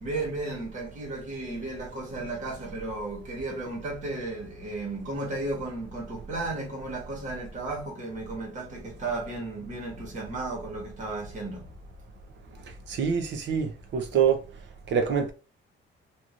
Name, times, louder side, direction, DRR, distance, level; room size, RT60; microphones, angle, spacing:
voice 1, 0.0-11.7 12.5-12.6, right 2 dB, 35° right, 1.3 m, -34 dB
voice 2, 12.9-14.4 14.9-15.3, right 7 dB, 60° right, 0.7 m, -25 dB
3.0 x 2.6 x 2.5 m
cardioid pair, 180°, 21 cm